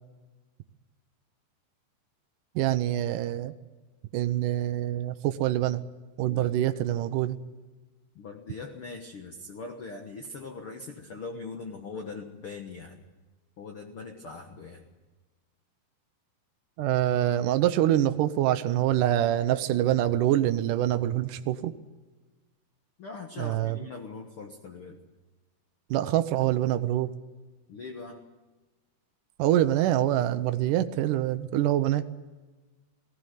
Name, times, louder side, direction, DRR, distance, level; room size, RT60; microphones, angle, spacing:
voice 1, 2.6-3.5 4.1-5.8 6.2-7.4 16.8-21.7 23.4-23.8 25.9-27.1 29.4-32.0, right 13 dB, 85° right, 10 dB, 1.8 m, -25 dB
voice 2, 8.1-13.0 13.6-14.8 23.0-25.0 27.7-28.2, left 4 dB, 90° left, 3 dB, 1.2 m, -41 dB
19.0 x 17.0 x 9.3 m, 1.2 s
omnidirectional pair, 4.8 m